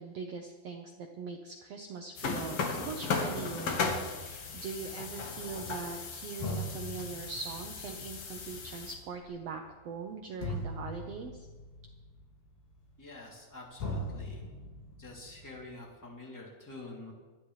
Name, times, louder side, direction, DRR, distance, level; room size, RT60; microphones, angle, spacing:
voice 1, 0.0-2.6 2.8-3.8 4.1-11.5, right 5 dB, 80° right, 3 dB, 1.4 m, -41 dB
sound 1, 2.2-9.0, left 4 dB, 55° left, 2.0 m, -36 dB
sound 2, 6.4-13.5 13.8-15.8, left 1 dB, 85° left, 4.6 m, -41 dB
voice 2, 13.0-14.4 15.0-17.1, left 2 dB, 5° left, -3 dB, 2.3 m, -47 dB
26.0 x 10.0 x 3.3 m, 1.3 s
omnidirectional pair, 4.0 m